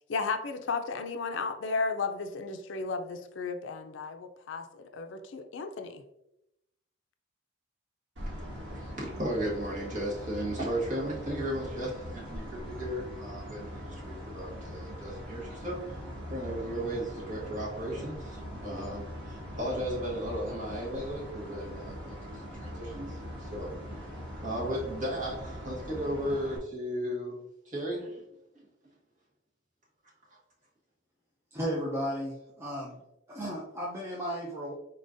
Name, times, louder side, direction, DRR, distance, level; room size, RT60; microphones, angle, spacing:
voice 1, 0.1-6.0, left 4 dB, 75° left, 7 dB, 0.4 m, -34 dB
sound 1, 8.2-26.6, equal, 70° right, 1.4 m, -41 dB
voice 2, 8.7-15.8 16.3-24.1 24.4-28.2, equal, 40° right, -5 dB, 1.5 m, -35 dB
voice 3, 31.5-33.0 33.3-34.7, equal, 15° right, -5 dB, 0.5 m, -34 dB
4.3 x 3.8 x 2.6 m, 0.83 s
head